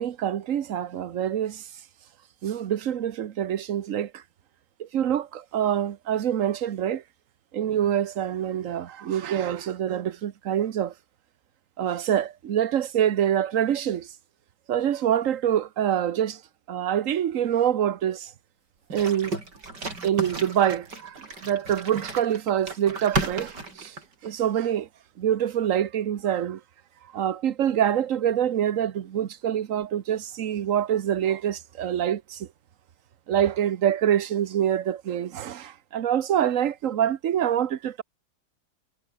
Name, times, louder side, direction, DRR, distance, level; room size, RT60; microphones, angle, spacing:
voice 1, 0.0-1.6 2.4-4.2 4.8-7.0 7.5-10.9 11.8-14.1 14.7-16.4 16.7-18.3 18.9-19.4 20.0-23.9 24.2-24.9 25.2-26.6 27.1-32.5 33.3-38.0, right 10 dB, 55° right, 1.2 m, -25 dB
sound 1, 18.9-24.3, right 3 dB, 90° right, 5.8 m, -34 dB
omnidirectional pair, 1.8 m